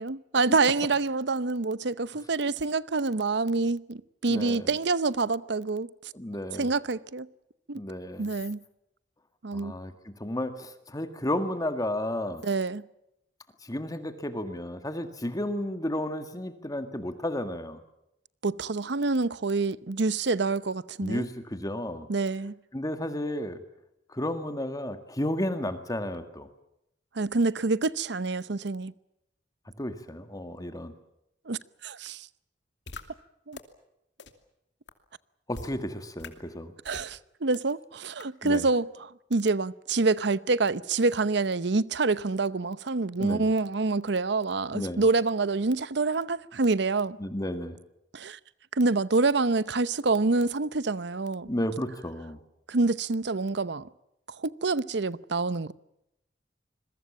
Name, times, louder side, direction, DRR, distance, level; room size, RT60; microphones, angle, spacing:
voice 1, 0.0-5.9 6.6-7.3 7.7-7.8 8.2-8.6 9.4-9.7 12.4-12.8 18.4-21.3 22.1-22.5 27.1-28.9 31.5-32.3 33.5-33.6 36.8-47.2 48.1-48.4 48.7-51.5 52.7-53.8 54.4-55.7, right 3 dB, 65° right, 0.8 m, -27 dB
voice 2, 4.3-4.7 6.1-6.7 7.8-8.3 9.5-12.4 13.6-17.8 21.0-22.1 22.7-23.6 24.1-26.5 29.8-30.9 35.5-36.7 38.4-38.7 43.2-43.5 44.7-45.0 47.2-47.8 51.5-52.4, left 1 dB, 20° left, 1.9 m, -32 dB
sound 1, 32.9-33.0 33.5-33.6 34.2-34.3 34.9-35.0 35.5-35.7 36.2-36.3 36.9-37.1 37.5-37.6 38.2-38.3, left 3 dB, 70° left, 2.6 m, -41 dB
27.0 x 22.0 x 7.3 m
head